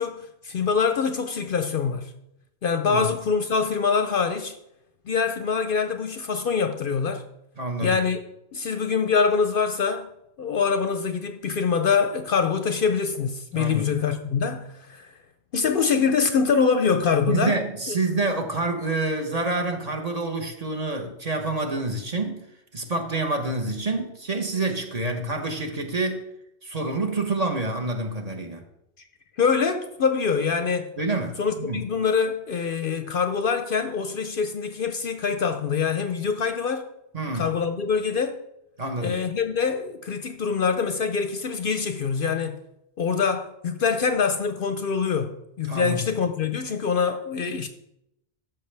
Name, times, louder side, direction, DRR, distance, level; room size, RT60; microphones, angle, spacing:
voice 1, 0.0-2.1 2.6-4.5 5.1-7.2 7.8-8.2 8.5-10.1 10.4-15.1 15.5-17.6 17.9-18.0 29.4-30.9 31.4-36.9 37.3-38.4 39.0-42.6 43.0-47.7, left 5 dB, 60° left, 0.7 m, -24 dB
voice 2, 7.6-8.0 13.5-13.9 17.3-22.4 22.7-26.3 26.6-28.6 31.0-31.8 37.1-37.5 38.8-39.2 45.7-46.1, right 2 dB, 35° right, 1.0 m, -27 dB
13.5 x 5.7 x 3.3 m
omnidirectional pair, 1.2 m